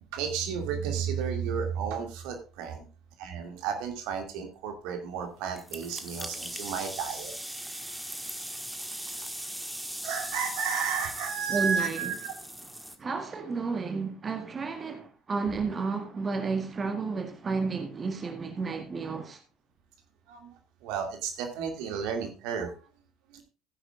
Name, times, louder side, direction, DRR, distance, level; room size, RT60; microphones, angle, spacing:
voice 1, 0.1-2.8 3.2-7.3 10.0-12.4 20.3-20.5 20.8-22.7 23.3-23.4, right 7 dB, 60° right, 2.3 m, -32 dB
sound 1, 5.6-13.0, right 1 dB, 5° right, 1.7 m, -39 dB
voice 2, 11.5-12.1 13.0-19.4, right 4 dB, 30° right, 1.7 m, -32 dB
15.5 x 10.0 x 2.4 m
figure-of-eight pair, 60°, 0 cm